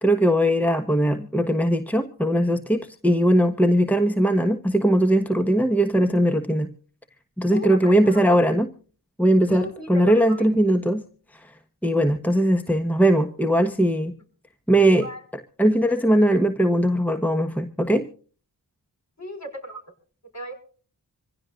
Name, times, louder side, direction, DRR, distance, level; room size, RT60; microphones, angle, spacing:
voice 1, 0.0-6.7 7.4-8.7 9.2-11.0 11.8-14.1 14.7-15.1 15.6-18.0, right 1 dB, 5° left, 6 dB, 1.3 m, -20 dB
voice 2, 7.5-8.5 9.5-10.5 15.0-15.2 19.2-19.8 20.3-20.5, equal, 40° left, 4 dB, 5.6 m, -35 dB
25.5 x 16.0 x 2.5 m, 0.41 s
wide cardioid pair, 50°, 41 cm